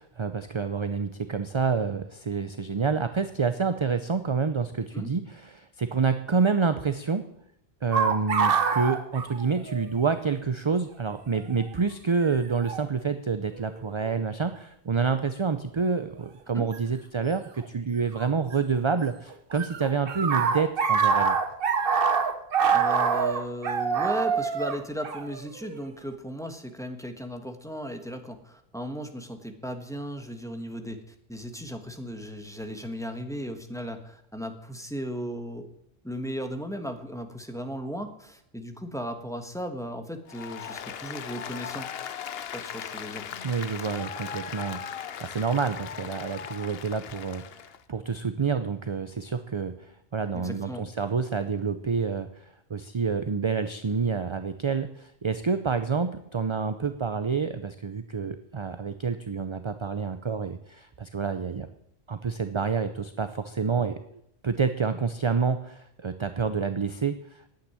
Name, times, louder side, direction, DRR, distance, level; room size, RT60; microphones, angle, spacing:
voice 1, 0.0-7.3 7.8-21.4 43.4-47.4 47.9-61.7 62.1-64.0 64.4-67.5, right 5 dB, 35° right, 10 dB, 0.6 m, -28 dB
sound 1, 7.9-10.0 10.3-10.4 11.4-11.6 12.6-12.9 13.6-14.1 16.7-16.8 18.2-19.1 19.3-25.9, right 6 dB, 55° right, 1.1 m, -25 dB
voice 2, 22.7-35.7 36.0-41.9 42.5-43.2 50.3-50.8, equal, 5° left, 5 dB, 1.4 m, -36 dB
Applause, 40.3-47.8, left 8 dB, 65° left, 0.9 m, -38 dB
10.5 x 9.0 x 9.7 m, 0.75 s
omnidirectional pair, 1.1 m